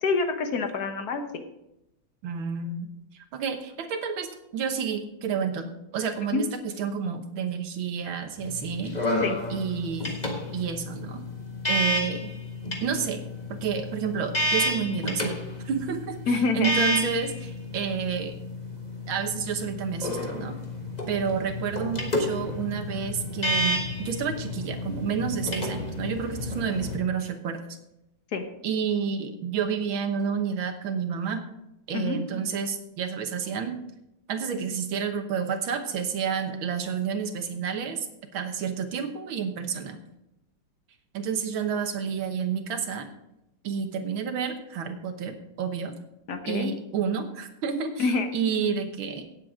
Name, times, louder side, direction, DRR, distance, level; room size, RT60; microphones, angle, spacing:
voice 1, 0.0-1.4 6.3-6.4 9.2-9.4 16.3-16.7 28.3-28.4 31.9-32.2 46.3-46.7 48.0-48.3, left 4 dB, 55° left, 6 dB, 1.5 m, -26 dB
voice 2, 2.2-5.7 5.9-9.0 9.5-10.2 10.5-11.2 11.7-12.3 12.8-13.2 13.5-15.3 15.7-18.4 19.1-20.6 21.1-27.6 28.6-31.4 31.9-33.8 34.3-38.1 38.3-40.0 41.1-43.1 43.6-45.9 46.5-49.2, right 6 dB, 85° right, 6 dB, 2.0 m, -30 dB
sound 1, 8.4-26.9, left 1 dB, 25° left, 1.5 m, -31 dB
16.5 x 7.6 x 3.7 m, 0.87 s
omnidirectional pair, 2.2 m